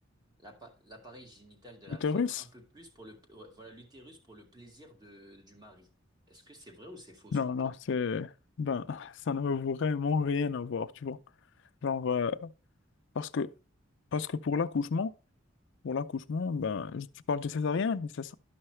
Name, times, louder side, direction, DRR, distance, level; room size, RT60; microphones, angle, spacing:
voice 1, 0.4-5.9 6.3-7.7, right 1 dB, 20° right, 1.9 m, -52 dB
voice 2, 2.0-2.4 7.3-8.3 8.6-11.2 11.8-12.5 13.2-13.5 14.1-15.1 15.8-18.3, left 5 dB, 65° left, 0.5 m, -31 dB
12.0 x 5.6 x 3.2 m
head